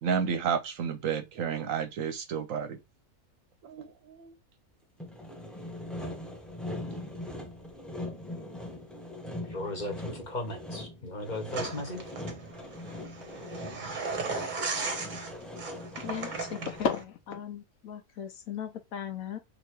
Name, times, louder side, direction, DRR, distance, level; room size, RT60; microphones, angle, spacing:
voice 1, 0.0-2.8 3.6-4.3, right 7 dB, 65° right, 0.9 m, -31 dB
Sawing, 5.0-17.0, left 1 dB, ahead, 0.4 m, -41 dB
voice 2, 9.4-12.0, left 1 dB, 35° left, 1.1 m, -36 dB
sound 1, 11.5-17.0, right 4 dB, 40° right, 0.8 m, -36 dB
voice 3, 16.0-19.4, left 7 dB, 70° left, 1.1 m, -35 dB
3.0 x 2.8 x 4.4 m
omnidirectional pair, 1.6 m